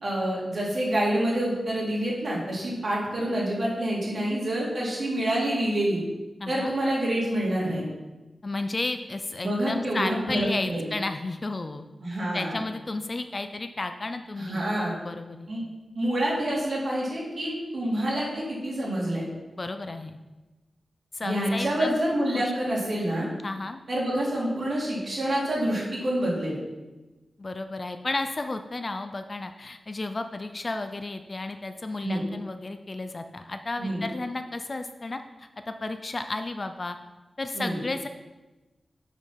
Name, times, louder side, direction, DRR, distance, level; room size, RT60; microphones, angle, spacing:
voice 1, 0.0-6.0 6.5-7.8 9.4-10.9 12.0-12.6 14.4-14.9 15.5-15.6 15.9-19.2 21.2-23.3 23.9-26.6 32.0-32.2 33.8-34.0 37.5-37.8, right 1 dB, 45° right, -5 dB, 2.9 m, -27 dB
voice 2, 6.4-6.7 8.4-11.8 12.3-14.7 15.0-15.5 19.5-20.2 21.1-22.0 22.3-22.5 23.4-23.8 27.4-37.0 37.4-38.1, left 2 dB, 35° left, 8 dB, 0.4 m, -33 dB
8.2 x 5.3 x 5.7 m, 1.1 s
wide cardioid pair, 150°, 0 cm